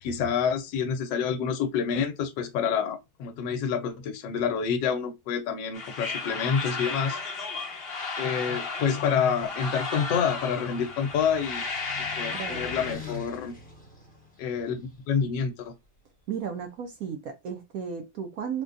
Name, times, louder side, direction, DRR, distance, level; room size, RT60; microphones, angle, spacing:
voice 1, 0.0-7.2 8.2-11.7 12.0-13.6 14.4-15.7, left 7 dB, 75° left, 1.3 m, -28 dB
sound 1, 5.7-12.9, left 4 dB, 45° left, 0.8 m, -34 dB
sound 2, 9.9-14.9, left 5 dB, 5° left, 0.7 m, -45 dB
voice 2, 12.3-12.8 16.3-18.6, right 7 dB, 75° right, 0.8 m, -34 dB
3.8 x 2.2 x 2.5 m
omnidirectional pair, 2.1 m